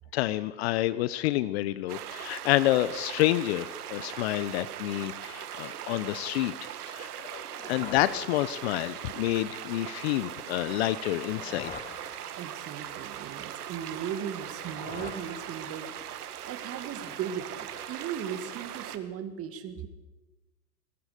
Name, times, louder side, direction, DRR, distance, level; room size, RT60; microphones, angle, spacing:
voice 1, 0.1-7.4 7.7-11.7, left 15 dB, 40° left, 16 dB, 0.8 m, -28 dB
sound 1, 1.9-19.0, right 10 dB, 65° right, 1.9 m, -40 dB
sound 2, 7.2-9.0 11.0-12.8 14.3-16.1, left 7 dB, 15° left, 0.9 m, -46 dB
voice 2, 12.3-19.9, right 8 dB, 30° right, 9 dB, 2.3 m, -37 dB
25.0 x 20.5 x 5.2 m, 1.1 s
hypercardioid pair, 115°, 49 cm